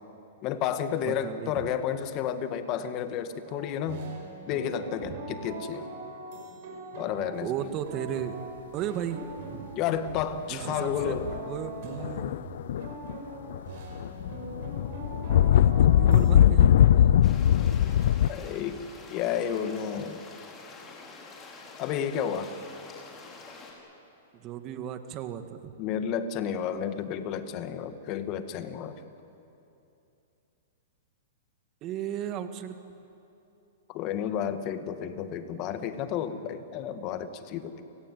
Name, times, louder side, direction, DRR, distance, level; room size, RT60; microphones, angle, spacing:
voice 1, 0.4-4.1 4.5-5.8 7.0-7.5 9.8-11.3 18.3-18.8 19.1-20.2 21.8-22.6 25.8-29.0 33.9-37.8, left 8 dB, 40° left, 9 dB, 1.8 m, -31 dB
voice 2, 1.1-1.6 5.0-5.1 7.4-8.4 8.7-9.2 9.5-9.7 10.5-11.2 11.5-12.5 15.2-17.1 24.4-25.7 31.8-32.8, right 10 dB, 35° right, 8 dB, 1.8 m, -35 dB
sound 1, 3.4-16.3, right 2 dB, 55° right, 6.2 m, -42 dB
sound 2, 10.1-10.4 11.0-11.5 12.0-13.2 13.5-18.3, left 10 dB, 65° left, 0.6 m, -21 dB
sound 3, 17.2-23.7, left 4 dB, 20° left, 5.4 m, -47 dB
30.0 x 18.0 x 9.4 m, 2.8 s
hypercardioid pair, 135°, 0 cm